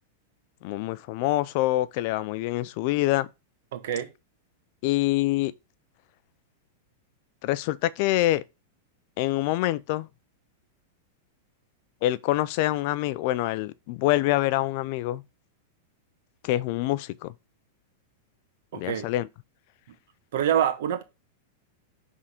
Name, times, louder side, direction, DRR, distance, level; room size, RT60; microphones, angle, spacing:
voice 1, 0.6-3.3 4.8-5.5 7.4-8.4 9.2-10.1 12.0-15.2 16.4-17.3 18.7-19.3, left 16 dB, 50° left, 0.4 m, -25 dB
voice 2, 3.7-4.1 18.7-19.1 20.3-21.0, right 10 dB, 70° right, 1.3 m, -26 dB
5.8 x 3.6 x 4.9 m
supercardioid pair, 145°, 0 cm